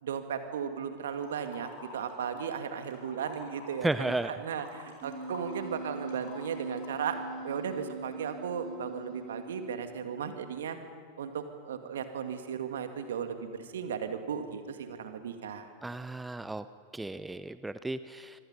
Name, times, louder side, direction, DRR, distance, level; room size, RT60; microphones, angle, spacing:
voice 1, 0.0-7.2 7.4-10.8 11.2-15.7, right 7 dB, 60° right, 7 dB, 2.1 m, -36 dB
sound 1, 1.0-2.5 2.8-7.3, left 3 dB, 55° left, 5.5 m, -49 dB
voice 2, 3.8-4.4 15.8-16.6 16.9-18.4, right 2 dB, 5° right, 13 dB, 0.6 m, -33 dB
Wind instrument woodwind instrument, 5.0-10.4, right 3 dB, 40° right, 2.8 m, -42 dB
26.0 x 24.0 x 5.5 m, 2.3 s
figure-of-eight pair, 90°, 0 cm